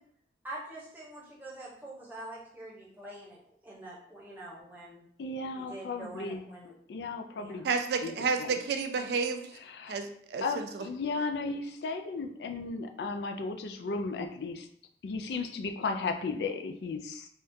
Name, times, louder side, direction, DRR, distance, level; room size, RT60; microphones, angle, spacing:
voice 1, 0.4-5.0 5.5-6.7 7.4-7.6, right 1 dB, 10° right, -6 dB, 0.8 m, -45 dB
voice 2, 5.2-6.4 6.9-7.7 8.0-8.1 8.4-8.6 9.7-10.0 10.4-14.7 15.0-17.3, left 3 dB, 75° left, 5 dB, 0.3 m, -35 dB
voice 3, 7.6-9.5 9.9-10.8, right 5 dB, 70° right, 6 dB, 0.3 m, -31 dB
3.5 x 2.3 x 2.6 m, 0.63 s
head